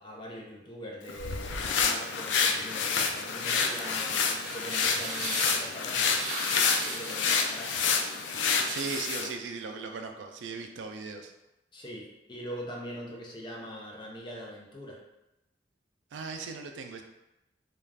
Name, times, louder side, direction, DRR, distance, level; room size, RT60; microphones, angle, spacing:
voice 1, 0.0-7.7 11.7-15.0, equal, 25° left, -2 dB, 0.5 m, -43 dB
sound 1, 1.1-9.3, left 5 dB, 80° left, 0.3 m, -28 dB
sound 2, 3.2-9.3, right 1 dB, 45° right, 0.9 m, -38 dB
voice 2, 8.7-11.3 16.1-17.0, right 4 dB, 85° right, 5 dB, 0.3 m, -38 dB
2.4 x 2.3 x 3.2 m, 0.93 s
head